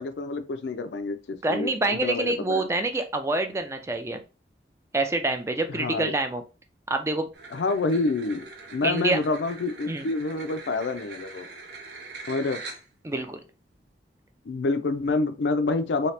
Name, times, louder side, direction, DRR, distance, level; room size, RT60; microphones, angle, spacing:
voice 1, 0.0-2.7 5.7-6.2 7.5-8.4 8.7-11.5 12.3-12.6 14.4-16.1, left 3 dB, 80° left, 0.4 m, -27 dB
voice 2, 1.4-4.2 4.9-6.4 6.9-7.3 8.8-9.2 9.9-10.0 13.0-13.4, right 2 dB, 15° right, 0.4 m, -26 dB
sound 1, 7.3-13.1, right 3 dB, 75° right, 0.8 m, -43 dB
2.8 x 2.8 x 3.2 m
head